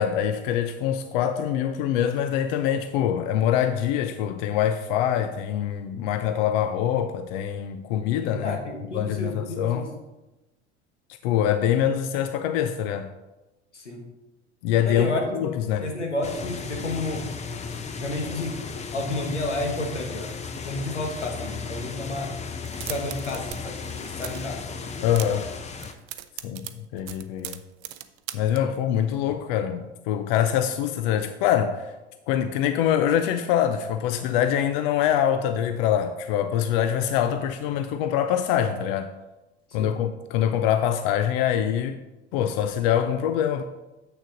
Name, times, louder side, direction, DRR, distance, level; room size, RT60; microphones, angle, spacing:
voice 1, 0.0-8.6 8.9-9.9 11.2-13.1 14.6-15.9 25.0-25.5 26.4-27.6 28.3-31.9 32.3-39.1 39.7-42.0 42.3-43.6, left 9 dB, 55° left, 0.6 m, -24 dB
voice 2, 8.2-9.9 13.7-14.0 14.8-15.5 15.8-17.2 18.0-18.6 18.9-20.3 20.6-22.3 22.8-24.6 39.8-39.9, left 2 dB, 90° left, 1.4 m, -31 dB
sound 1, 16.2-25.9, left 5 dB, 20° left, 0.7 m, -35 dB
sound 2, 22.6-23.6 23.8-24.5 24.9-25.5 25.8-28.6, right 14 dB, 50° right, 0.6 m, -38 dB
7.7 x 6.3 x 3.8 m
hypercardioid pair, 75°, 34 cm